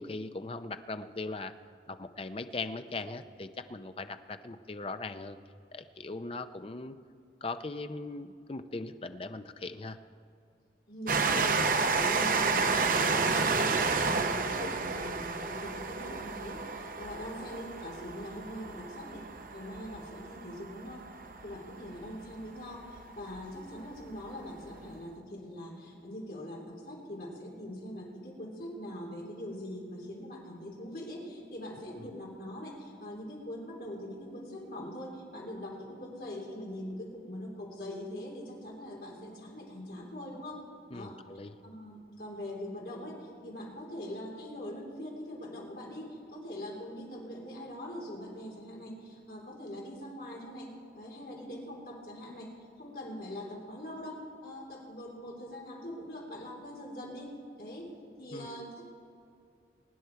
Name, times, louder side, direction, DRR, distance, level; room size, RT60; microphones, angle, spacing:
voice 1, 0.0-1.5 1.9-5.4 5.7-6.9 7.4-10.0 31.9-32.1 40.9-41.5 58.3-58.7, left 3 dB, 30° left, 10 dB, 0.5 m, -39 dB
voice 2, 10.9-21.1 21.4-40.6 40.9-41.2 41.6-52.5 52.8-57.9 58.2-58.9, left 1 dB, 55° left, -2 dB, 3.3 m, -42 dB
Train, 11.1-22.2 23.0-23.1 23.3-23.4, right 4 dB, 50° right, 0.7 m, -30 dB
23.0 x 9.6 x 4.6 m, 2.5 s
head